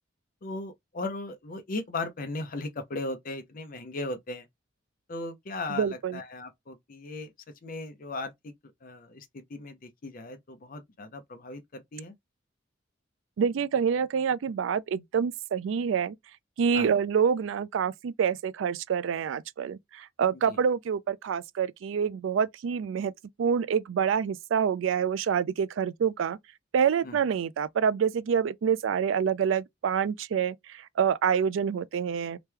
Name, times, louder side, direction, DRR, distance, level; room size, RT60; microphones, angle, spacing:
voice 1, 0.4-4.5 5.1-7.3 7.6-8.5 8.8-12.1 16.7-16.9 20.5-20.6 27.0-27.2, left 2 dB, 45° left, 0.6 m, -37 dB
voice 2, 5.7-6.2 13.4-16.2 16.6-23.1 23.4-26.4 26.7-32.4, right 7 dB, 80° right, 0.3 m, -27 dB
2.9 x 2.2 x 3.2 m
head